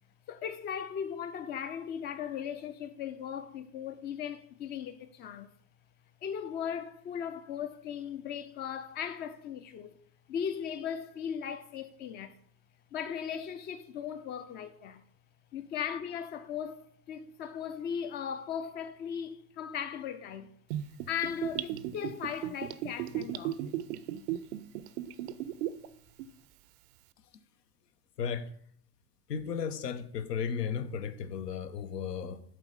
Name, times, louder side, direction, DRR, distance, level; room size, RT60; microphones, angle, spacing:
voice 1, 0.3-5.5 6.2-10.0 10.3-12.4 12.9-15.0 15.5-20.5 21.1-23.6, left 8 dB, 25° left, 0.3 m, -38 dB
Gurgling / Bathtub (filling or washing), 20.7-25.9 26.2-26.3, right 12 dB, 45° right, 0.5 m, -35 dB
voice 2, 28.2-28.5 29.3-32.4, left 7 dB, 75° left, 0.7 m, -34 dB
7.4 x 4.2 x 5.3 m
figure-of-eight pair, 75°, 49 cm